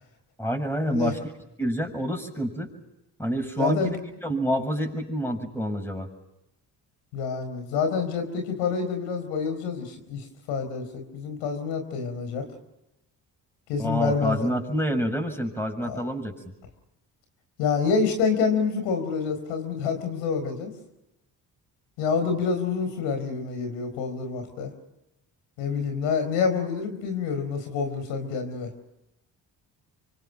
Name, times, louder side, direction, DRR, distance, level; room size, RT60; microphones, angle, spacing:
voice 1, 0.4-1.2 1.6-2.7 3.2-6.1 13.8-16.3, equal, 5° left, 4 dB, 7.2 m, -28 dB
voice 2, 3.6-4.0 7.1-12.5 13.7-14.5 15.8-16.0 17.6-20.7 22.0-24.7 25.6-28.7, left 5 dB, 90° left, 7 dB, 4.6 m, -27 dB
27.5 x 25.0 x 6.0 m, 0.91 s
hypercardioid pair, 50°, 44 cm